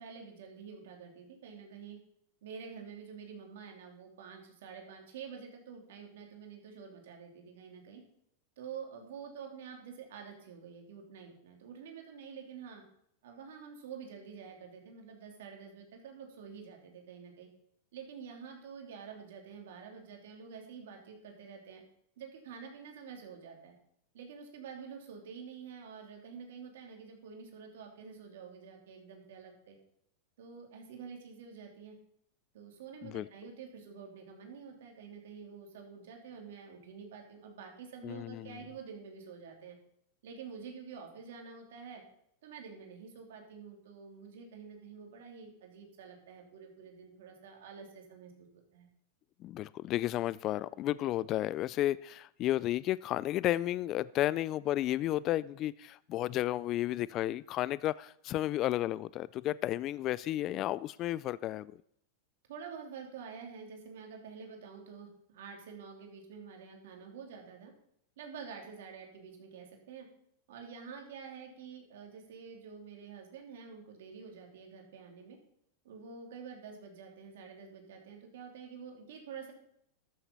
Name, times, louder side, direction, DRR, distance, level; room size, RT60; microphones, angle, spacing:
voice 1, 0.0-2.0 2.4-8.0 8.6-12.8 13.2-17.5 17.9-21.8 22.2-23.7 24.1-29.8 30.4-31.9 32.5-39.8 40.2-42.0 42.4-48.9 62.5-67.7 68.2-70.1 70.5-75.4 75.8-79.5, right 6 dB, 75° right, 3.1 m, -48 dB
voice 2, 38.0-38.5 49.4-61.7, left 14 dB, 35° left, 0.3 m, -32 dB
13.0 x 7.3 x 5.4 m
supercardioid pair, 135°, 0 cm